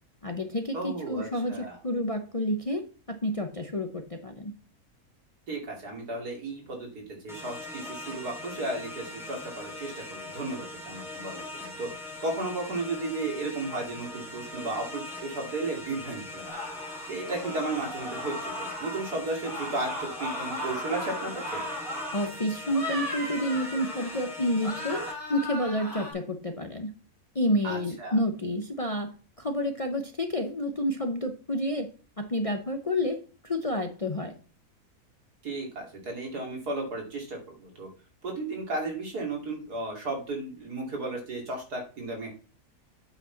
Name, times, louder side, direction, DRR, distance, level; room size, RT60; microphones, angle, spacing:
voice 1, 0.2-4.5 22.1-25.0 25.3-26.9 27.3-29.1 29.4-31.9 32.2-34.3, left 1 dB, 30° left, 5 dB, 0.7 m, -29 dB
voice 2, 0.7-1.8 5.5-16.6 17.1-21.6 27.6-28.1 35.4-37.9 38.2-42.3, right 2 dB, 85° right, 0 dB, 3.2 m, -34 dB
sound 1, 7.3-25.1, left 2 dB, ahead, 3.1 m, -41 dB
sound 2, 16.5-19.1 19.4-22.3 22.7-24.3 24.6-26.1, left 1 dB, 40° right, 4.5 m, -36 dB
8.2 x 6.1 x 4.0 m, 0.37 s
omnidirectional pair, 1.6 m